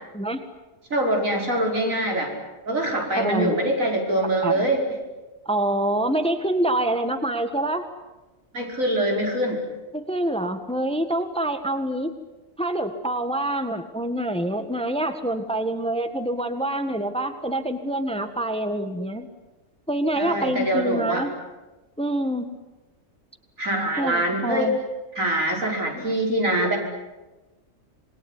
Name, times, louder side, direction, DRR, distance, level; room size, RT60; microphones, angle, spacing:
voice 1, 0.9-2.4 2.6-4.8 8.5-9.6 20.2-21.3 23.6-24.8 25.2-26.8, right 1 dB, 75° right, 1 dB, 5.7 m, -24 dB
voice 2, 3.2-3.6 4.4-4.7 5.4-7.9 9.9-12.1 12.6-19.3 19.9-21.3 22.0-22.5 24.0-24.8 25.9-26.1, right 1 dB, 5° left, 8 dB, 1.6 m, -26 dB
27.0 x 21.5 x 9.9 m, 1.1 s
omnidirectional pair, 1.4 m